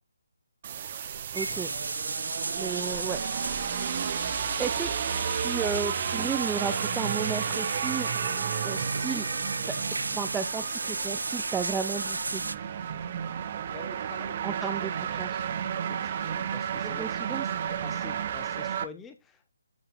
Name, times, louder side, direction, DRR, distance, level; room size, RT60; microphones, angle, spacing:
sound 1, 0.6-18.9, right 8 dB, 30° right, 0.9 m, -33 dB
voice 1, 1.3-1.7 2.5-3.2 4.6-5.0 5.2-9.3 10.1-12.4 14.4-15.5 16.9-17.5, right 6 dB, 5° right, 6 dB, 0.5 m, -34 dB
sound 2, 1.3-12.6, right 3 dB, 65° right, 0.4 m, -33 dB
voice 2, 13.7-15.0 15.7-19.5, left 6 dB, 10° left, 9 dB, 1.1 m, -48 dB
12.5 x 5.7 x 2.6 m, 0.23 s
figure-of-eight pair, 145°, 0 cm